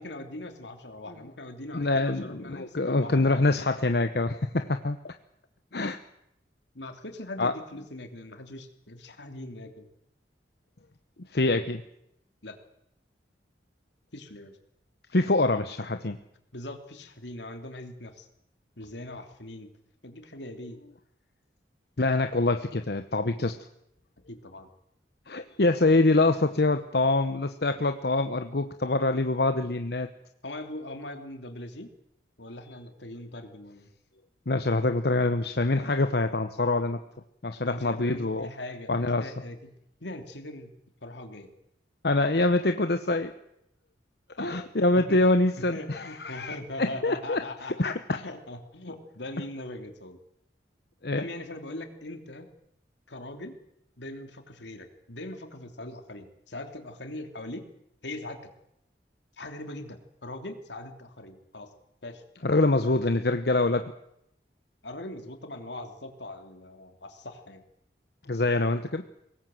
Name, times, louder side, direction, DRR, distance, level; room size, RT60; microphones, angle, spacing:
voice 1, 0.0-3.3 6.7-9.9 12.4-12.6 14.1-14.6 16.5-18.3 18.8-19.7 20.0-20.8 24.3-24.7 30.4-31.9 32.4-33.9 37.6-39.7 40.0-40.7 41.0-41.5 44.4-44.6 45.0-45.3 45.6-50.2 51.1-52.5 53.1-53.6 54.0-57.7 58.0-58.4 59.4-61.7 62.0-62.2 64.8-67.6, left 1 dB, 85° left, 6 dB, 3.0 m, -41 dB
voice 2, 1.7-5.1 5.7-6.0 7.4-7.5 11.3-11.8 15.1-16.2 22.0-23.5 25.3-30.1 34.5-37.0 37.4-38.5 38.9-39.3 42.0-43.3 44.4-47.4 47.8-48.0 51.0-51.2 62.4-63.9 68.3-69.0, left 2 dB, 65° left, 8 dB, 1.0 m, -25 dB
23.0 x 19.0 x 7.8 m, 0.80 s
head